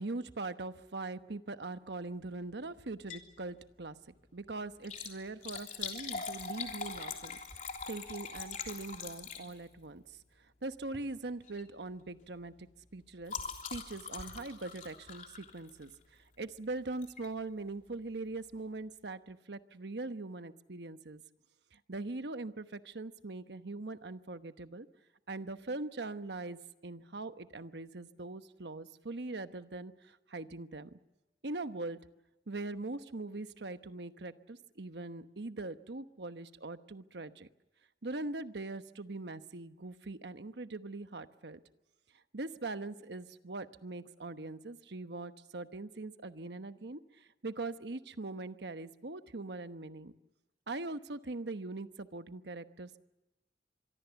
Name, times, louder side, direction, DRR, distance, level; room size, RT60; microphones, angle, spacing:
voice 1, 0.0-3.9 4.3-10.2 10.6-12.7 12.9-13.3 13.7-21.2 21.7-24.9 25.3-31.0 31.4-32.0 32.5-37.5 38.0-41.6 42.3-50.1 50.7-53.0, right 2 dB, 75° right, 10 dB, 1.1 m, -42 dB
Liquid, 2.9-3.3 3.7-3.8 4.7-9.8 10.8-11.1 11.4-11.7 12.0-16.1 17.0-17.3 17.8-17.9 18.1-18.2, left 5 dB, 45° left, 3.4 m, -43 dB
25.5 x 23.5 x 7.1 m, 0.99 s
head